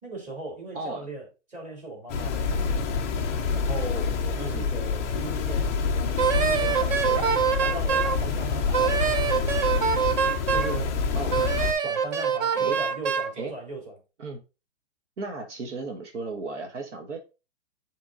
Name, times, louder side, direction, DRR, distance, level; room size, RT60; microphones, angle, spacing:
voice 1, 0.0-2.8 3.5-5.8 6.4-9.5 10.5-11.0 11.8-13.9, right 2 dB, 20° right, 2.8 m, -38 dB
voice 2, 0.7-1.1 4.4-4.7 11.1-11.4 12.5-12.8 13.3-13.5 14.2-14.4 15.2-17.2, right 3 dB, 70° right, 1.4 m, -35 dB
sound 1, 2.1-11.7, left 5 dB, 15° left, 0.3 m, -27 dB
Wind instrument woodwind instrument, 6.2-8.2 8.7-10.8 11.3-13.3, right 7 dB, 35° right, 0.8 m, -25 dB
7.3 x 3.7 x 3.8 m
hypercardioid pair, 130°, 37 cm